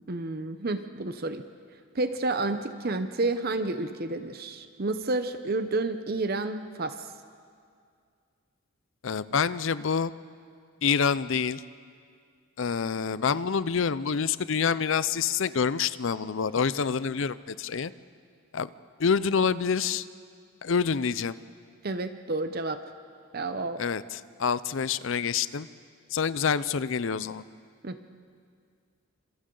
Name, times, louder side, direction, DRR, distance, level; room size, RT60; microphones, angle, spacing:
voice 1, 0.1-1.4 1.9-7.0 21.8-22.8 23.3-23.8 27.8-28.0, right 2 dB, 45° right, 9 dB, 0.7 m, -30 dB
voice 2, 9.0-10.1 10.8-11.6 12.6-17.9 18.5-18.7 19.0-20.0 20.6-21.3 23.8-25.7 26.1-27.4, left 6 dB, 60° left, 16 dB, 0.5 m, -27 dB
28.0 x 26.5 x 3.9 m, 2.2 s
head